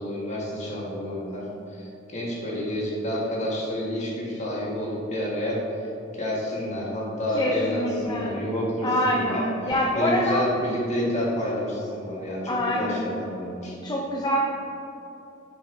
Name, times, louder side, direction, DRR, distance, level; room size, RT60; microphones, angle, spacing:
voice 1, 0.0-5.6 6.2-13.7, equal, 35° left, -4 dB, 1.5 m, -29 dB
voice 2, 7.3-8.4 8.8-10.5 12.5-13.1 13.8-14.4, left 1 dB, 20° left, -3 dB, 0.5 m, -25 dB
7.6 x 4.8 x 3.2 m, 2.8 s
head